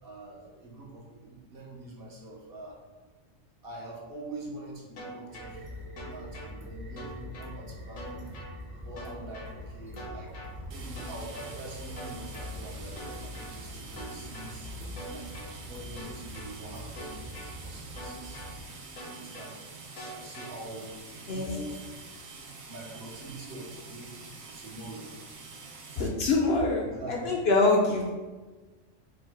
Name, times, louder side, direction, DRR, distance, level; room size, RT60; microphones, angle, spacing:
voice 1, 0.0-2.8 3.6-5.7 6.1-8.3 8.7-10.4 10.7-14.7 15.1-15.3 15.7-17.3 17.6-18.4 19.0-19.6 20.1-21.0 21.3-21.9 22.7-25.2 25.9-26.1 26.8-27.3, right 1 dB, 50° right, -2 dB, 0.9 m, -44 dB
sound 1, 5.0-5.5 6.0-6.5 7.0-7.5 8.0-8.5 9.0-9.5 10.0-10.5 11.0-11.5 12.0-12.5 13.0-13.5 14.0-14.5 15.0-15.5 16.0-16.5 17.0-17.5 18.0-18.5 19.0-19.5 20.0-20.5, equal, 80° left, 1.3 m, -43 dB
sound 2, 5.3-18.6, left 1 dB, 10° right, 0.6 m, -43 dB
sound 3, 10.7-26.1, right 4 dB, 85° right, 1.1 m, -46 dB
voice 2, 25.9-28.1, left 3 dB, 60° left, 0 dB, 0.7 m, -25 dB
5.0 x 2.1 x 4.6 m, 1.3 s
omnidirectional pair, 1.3 m